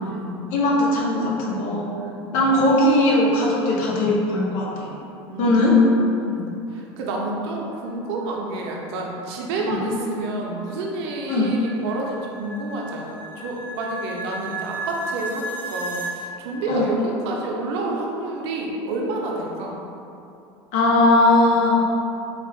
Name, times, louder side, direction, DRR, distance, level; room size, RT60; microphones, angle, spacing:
voice 1, 0.0-0.4 1.7-1.8 2.2-2.3 5.3-5.6 6.2-19.8, right 2 dB, 70° right, -1 dB, 0.7 m, -29 dB
voice 2, 0.5-1.9 2.3-4.9 5.4-5.8 9.7-9.8 11.3-11.5 16.7-16.9 20.7-21.8, left 2 dB, 60° left, -3 dB, 0.9 m, -19 dB
sound 1, 9.5-16.1, right 2 dB, 15° left, 0.8 m, -35 dB
4.0 x 2.4 x 3.5 m, 2.7 s
hypercardioid pair, 80°, 14 cm